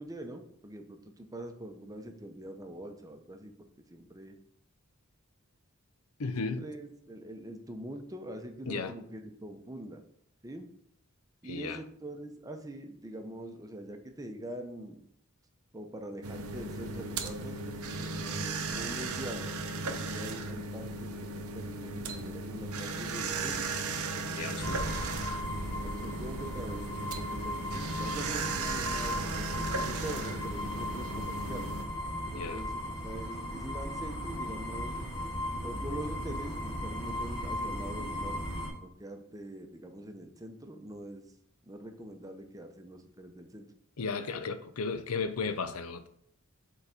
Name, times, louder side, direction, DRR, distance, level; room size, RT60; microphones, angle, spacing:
voice 1, 0.0-3.5 3.9-4.4 6.4-10.0 10.4-10.7 11.4-15.0 15.7-23.6 24.1-24.8 25.8-31.7 32.3-35.0 35.6-38.4 38.8-41.3 41.7-43.7, right 1 dB, 15° right, 0.7 m, -43 dB
voice 2, 6.2-6.7 8.7-8.9 11.4-11.8 24.4-24.8 32.3-32.6 44.0-46.1, left 4 dB, 75° left, 0.6 m, -35 dB
sound 1, 16.2-31.8, right 3 dB, 90° right, 0.8 m, -36 dB
sound 2, 24.6-38.7, left 1 dB, 20° left, 2.9 m, -36 dB
5.7 x 4.0 x 5.7 m
head